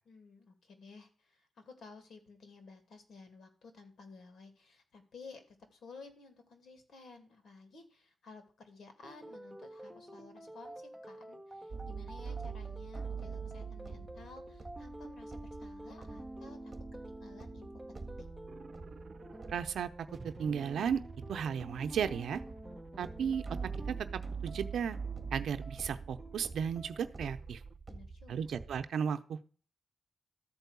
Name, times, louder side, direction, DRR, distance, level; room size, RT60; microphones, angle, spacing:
voice 1, 0.1-16.7 17.2-18.1 27.9-28.5, left 4 dB, 70° left, 6 dB, 2.7 m, -54 dB
sound 1, 9.0-27.3, right 1 dB, ahead, 1.2 m, -49 dB
sound 2, 11.7-28.9, right 5 dB, 30° right, 1.7 m, -45 dB
sound 3, 18.5-19.6 20.1-27.8, right 4 dB, 45° right, 0.6 m, -51 dB
voice 2, 19.5-19.9 20.2-21.0 21.3-22.4 23.0-23.6 23.9-25.0 25.3-27.6 28.3-29.4, right 7 dB, 85° right, 9 dB, 0.6 m, -34 dB
13.5 x 4.6 x 8.2 m, 0.43 s
cardioid pair, 100°, 0 cm